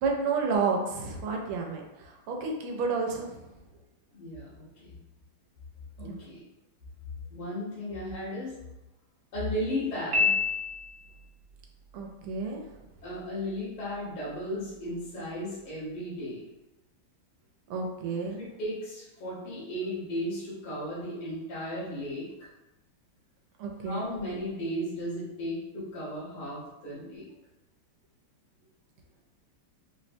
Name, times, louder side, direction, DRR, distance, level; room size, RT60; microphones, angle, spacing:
voice 1, 0.0-3.4 6.0-6.2 11.9-12.6 17.7-18.4 23.6-24.1, right 4 dB, 90° right, 1 dB, 1.5 m, -30 dB
voice 2, 4.1-4.9 6.0-6.4 7.3-8.5 9.3-10.4 13.0-16.4 18.4-22.3 23.9-27.3, equal, 80° left, -8 dB, 2.0 m, -35 dB
Piano, 10.1-11.2, left 4 dB, 65° right, 0.9 m, -27 dB
4.4 x 2.1 x 2.6 m, 0.98 s
omnidirectional pair, 2.3 m